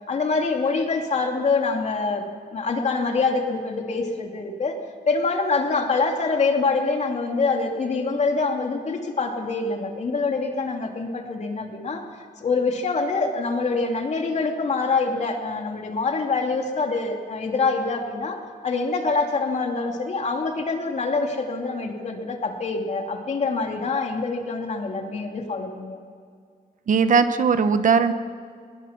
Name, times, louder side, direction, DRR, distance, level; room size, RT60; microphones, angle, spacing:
voice 1, 0.1-2.2 2.5-4.8 5.1-12.0 12.4-18.4 18.6-26.0, left 4 dB, 45° left, 3 dB, 2.8 m, -25 dB
voice 2, 26.9-28.1, right 5 dB, 55° right, 10 dB, 1.0 m, -19 dB
21.5 x 20.5 x 6.0 m, 2.2 s
wide cardioid pair, 135°, 16 cm